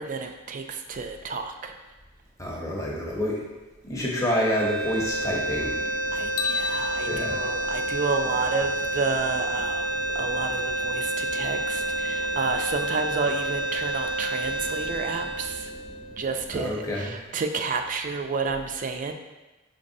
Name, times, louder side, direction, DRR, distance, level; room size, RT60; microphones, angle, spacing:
voice 1, 0.0-1.7 6.1-9.8 10.1-15.7 16.2-19.1, right 4 dB, 40° right, 6 dB, 0.3 m, -30 dB
voice 2, 2.4-3.4 3.8-5.8 7.0-7.4 16.5-17.1, left 1 dB, 15° left, -4 dB, 0.7 m, -28 dB
sound 1, 4.2-16.4, right 1 dB, 80° right, 0.6 m, -29 dB
sound 2, 4.8-16.7, left 1 dB, 55° left, 0.7 m, -45 dB
sound 3, 6.4-8.6, left 5 dB, 90° left, 0.3 m, -34 dB
5.2 x 3.2 x 2.6 m, 1.1 s
head